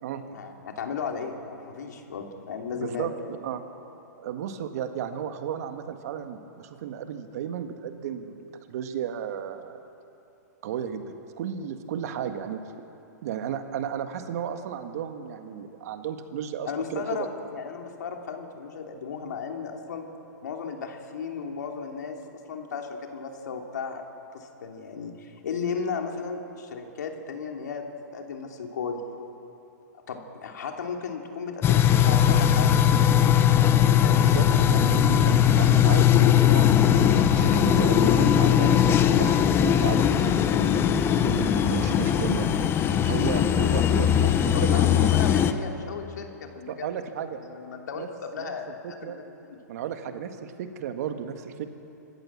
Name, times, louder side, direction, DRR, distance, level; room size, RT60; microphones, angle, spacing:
voice 1, 0.3-3.1 16.7-20.1 20.4-24.0 24.3-27.8 28.1-29.0 30.1-32.9 33.7-34.4 44.5-46.9 47.4-49.6, left 5 dB, 70° left, 2 dB, 3.1 m, -35 dB
voice 2, 2.7-3.1 3.4-3.6 4.2-9.8 10.6-12.6 13.2-17.3 34.2-40.8 41.2-45.1 46.7-47.4 48.0-48.1 48.3-48.5 48.8-49.2 49.7-51.7, right 8 dB, 60° right, 7 dB, 1.7 m, -34 dB
sound 1, 31.6-45.5, left 9 dB, 25° left, 1.0 m, -20 dB
26.0 x 14.5 x 7.4 m, 2.9 s
hypercardioid pair, 125°, 10 cm